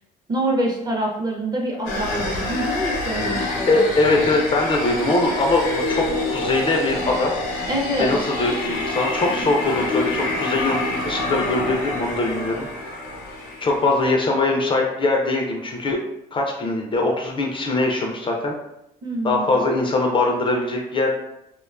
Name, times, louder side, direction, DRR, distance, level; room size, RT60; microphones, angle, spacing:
voice 1, 0.3-3.8 7.7-8.1 19.0-19.6, right 1 dB, 25° right, 0 dB, 0.5 m, -25 dB
sound 1, 1.9-14.1, left 2 dB, 85° left, 0.6 m, -27 dB
voice 2, 3.7-7.4 8.0-10.8 11.0-12.7 13.6-16.0 16.3-18.5 19.2-21.1, left 2 dB, 30° left, 0 dB, 0.4 m, -21 dB
2.5 x 2.2 x 2.3 m, 0.83 s
cardioid pair, 110°, 17 cm